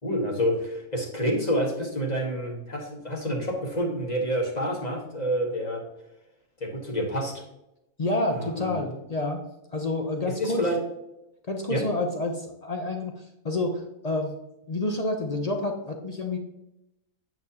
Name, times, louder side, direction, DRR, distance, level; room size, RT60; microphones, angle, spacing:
voice 1, 0.0-5.8 6.6-7.4 8.3-8.8 10.3-10.8 11.7-11.8, equal, 30° left, -1 dB, 1.5 m, -28 dB
voice 2, 8.0-10.6 11.5-14.4 14.7-16.4, left 2 dB, 60° left, 3 dB, 0.4 m, -29 dB
8.7 x 6.1 x 2.8 m, 0.87 s
omnidirectional pair, 1.6 m